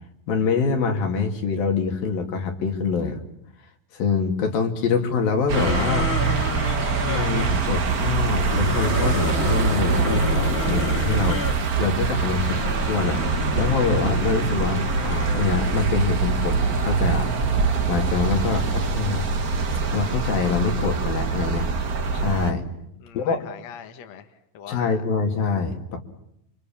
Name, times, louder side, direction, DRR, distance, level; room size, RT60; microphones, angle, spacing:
voice 1, 0.3-3.2 3.9-6.1 7.0-11.5 11.8-13.2 13.6-17.3 17.9-19.3 19.9-21.7 22.1-22.6 23.1-23.4 24.7-26.0, left 5 dB, 80° left, 4 dB, 4.4 m, -25 dB
sound 1, 5.5-7.6 8.4-11.6 12.3-15.7, left 4 dB, 30° left, 1.1 m, -30 dB
sound 2, 5.5-22.5, right 4 dB, 80° right, 0.8 m, -24 dB
voice 2, 23.0-25.0, left 8 dB, 55° left, 6 dB, 2.5 m, -42 dB
28.5 x 26.5 x 7.3 m, 0.78 s
omnidirectional pair, 4.1 m